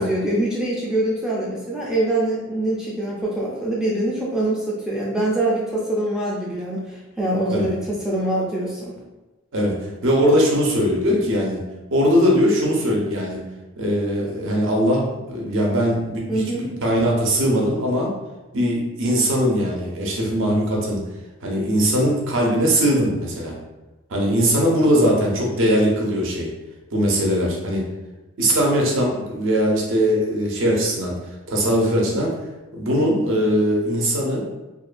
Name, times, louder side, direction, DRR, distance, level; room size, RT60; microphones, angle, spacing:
voice 1, 0.0-8.9 16.3-16.7, right 1 dB, 5° right, -6 dB, 0.3 m, -24 dB
voice 2, 10.0-11.6 11.9-13.4 13.8-18.1 18.5-21.0 21.4-23.6 24.1-26.5 26.9-27.8 28.4-31.1 31.5-32.3 32.7-34.4, equal, 60° right, -2 dB, 0.6 m, -20 dB
2.5 x 2.2 x 2.4 m, 1.1 s
head